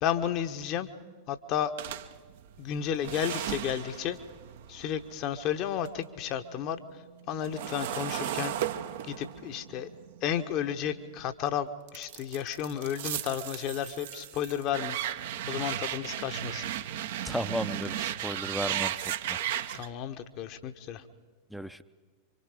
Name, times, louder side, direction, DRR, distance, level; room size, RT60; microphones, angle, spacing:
voice 1, 0.0-0.9 1.3-1.7 2.6-4.2 4.7-7.0 7.3-8.6 9.0-9.9 10.2-15.0 15.5-16.7 19.7-21.0, left 9 dB, 40° left, 8 dB, 1.2 m, -32 dB
sound 1, 1.8-6.0 6.4-11.3 11.9-19.9, right 11 dB, 55° right, 0.8 m, -36 dB
voice 2, 17.2-18.9 19.3-19.4 21.5-21.8, equal, ahead, 12 dB, 0.7 m, -34 dB
26.5 x 25.0 x 5.0 m, 1.5 s
figure-of-eight pair, 90°, 0 cm